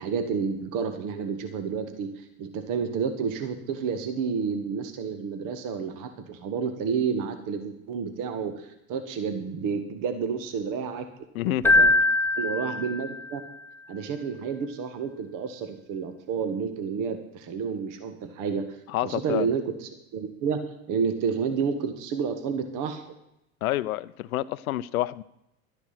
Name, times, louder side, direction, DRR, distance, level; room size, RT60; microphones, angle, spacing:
voice 1, 0.0-11.1 11.4-11.9 12.4-13.4 13.9-23.1, right 6 dB, 45° right, 8 dB, 1.7 m, -30 dB
voice 2, 11.3-11.9 18.9-19.5 23.6-25.2, left 15 dB, 75° left, 15 dB, 0.7 m, -28 dB
Keyboard (musical), 11.6-13.5, left 2 dB, 5° left, 1.1 m, -22 dB
12.5 x 9.9 x 5.7 m, 0.82 s
hypercardioid pair, 95°, 43 cm